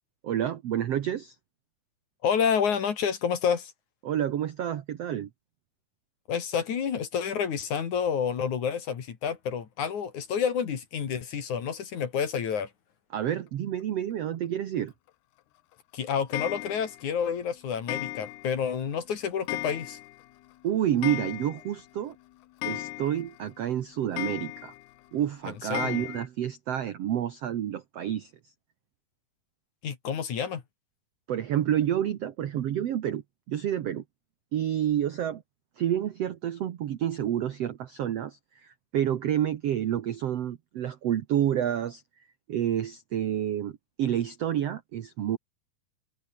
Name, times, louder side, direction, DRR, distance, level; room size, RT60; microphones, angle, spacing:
voice 1, 0.2-1.3 4.0-5.3 13.1-14.9 20.6-22.1 22.6-24.7 25.1-28.3 31.3-33.2 33.5-34.0 34.5-35.4 35.8-42.0 42.5-45.4, right 10 dB, 75° right, 1.4 m, -29 dB
voice 2, 2.2-3.7 6.3-12.7 15.9-20.0 25.7-26.0 29.8-30.6, left 7 dB, 50° left, 3.5 m, -29 dB
Clock, 16.3-17.1 17.9-18.6 18.9-19.0 19.5-20.2 20.5-20.6 20.8-21.8 22.1-22.2 22.6-23.4 24.2-24.9 25.7-26.3, left 16 dB, 90° left, 3.0 m, -36 dB
omnidirectional pair, 4.6 m